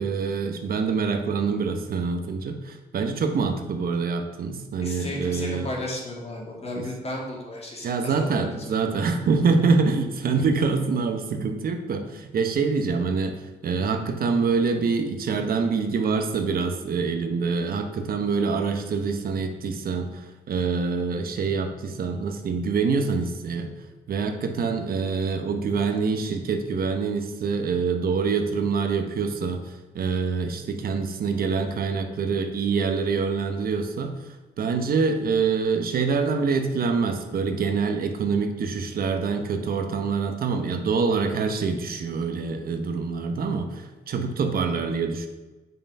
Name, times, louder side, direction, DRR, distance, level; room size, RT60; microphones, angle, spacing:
voice 1, 0.0-5.7 6.8-6.9 7.8-23.7 24.1-34.1 34.6-45.3, right 5 dB, 65° right, 6 dB, 1.0 m, -25 dB
voice 2, 4.8-8.7, left 1 dB, 40° left, -1 dB, 2.6 m, -34 dB
7.8 x 5.6 x 5.4 m, 1.2 s
cardioid pair, 100°, 16 cm